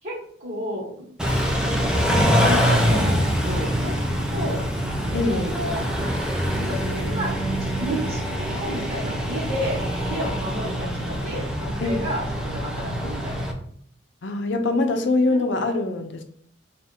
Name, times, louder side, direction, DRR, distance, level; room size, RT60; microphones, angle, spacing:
voice 1, 0.0-1.1 1.3-4.0 4.3-4.6 5.1-5.8 6.6-7.3 7.6-9.8 10.0-13.5 15.3-15.4, equal, 40° right, -5 dB, 1.4 m, -32 dB
Car / Idling / Accelerating revving vroom, 1.2-13.5, equal, 5° right, 0.5 m, -24 dB
voice 2, 5.1-5.5 11.8-12.1 14.2-16.2, left 2 dB, 70° left, 6 dB, 0.6 m, -23 dB
3.5 x 2.5 x 4.3 m, 0.64 s
head